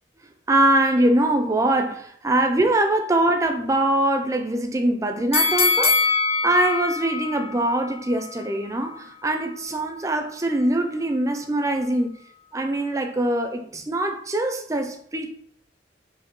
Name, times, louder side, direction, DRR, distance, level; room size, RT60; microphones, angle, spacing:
voice 1, 0.5-6.0 6.4-12.1 12.5-15.3, right 1 dB, 20° right, 5 dB, 0.4 m, -23 dB
sound 1, 5.3-8.4 8.8-8.9, left 4 dB, 35° left, 0.5 m, -23 dB
5.0 x 2.6 x 3.0 m, 0.64 s
head